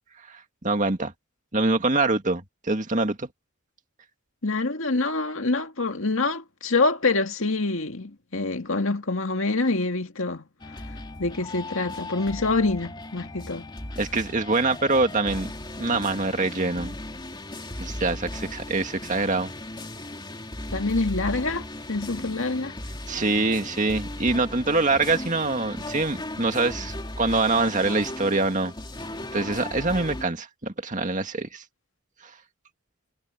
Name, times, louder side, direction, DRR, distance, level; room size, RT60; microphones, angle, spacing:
voice 1, 0.3-1.1 1.5-3.3 14.0-15.5 15.8-17.0 17.8-19.5 23.1-28.7 29.3-31.6, right 3 dB, 35° right, 2.1 m, -25 dB
voice 2, 4.4-10.4 11.2-13.7 20.7-22.7, left 3 dB, 65° left, 2.1 m, -26 dB
sound 1, 10.6-30.3, left 1 dB, 20° left, 2.6 m, -37 dB
head